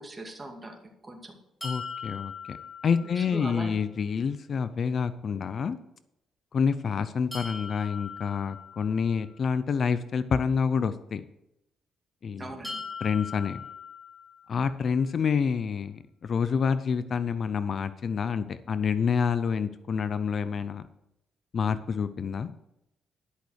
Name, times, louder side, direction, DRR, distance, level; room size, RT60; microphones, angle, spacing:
voice 1, 0.0-1.4 3.0-3.7 12.4-12.8, right 1 dB, 20° right, 3 dB, 2.2 m, -40 dB
voice 2, 1.6-2.6 2.8-5.8 6.5-11.2 12.2-12.5 13.0-13.6 14.5-20.8 21.5-22.5, left 6 dB, 50° left, 13 dB, 0.6 m, -28 dB
sound 1, 1.6-3.6 7.3-9.4 12.6-14.7, left 5 dB, 15° left, 3.5 m, -40 dB
11.5 x 6.4 x 6.4 m, 0.85 s
cardioid pair, 90°, 0 cm